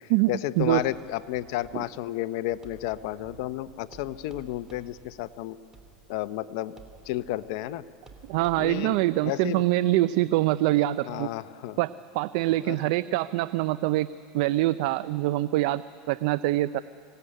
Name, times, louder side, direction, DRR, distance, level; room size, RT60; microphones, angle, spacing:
voice 1, 0.3-5.6 6.1-6.7 7.1-7.8 8.6-9.6 11.1-11.8 12.6-12.8, left 15 dB, 70° left, 13 dB, 0.8 m, -32 dB
sound 1, 0.6-8.8, right 4 dB, 20° right, 3.2 m, -53 dB
voice 2, 8.3-11.3 11.8-14.1 14.3-15.8 16.1-16.8, right 16 dB, 65° right, 15 dB, 0.5 m, -24 dB
25.0 x 17.5 x 10.0 m, 2.3 s
supercardioid pair, 120°, 3 cm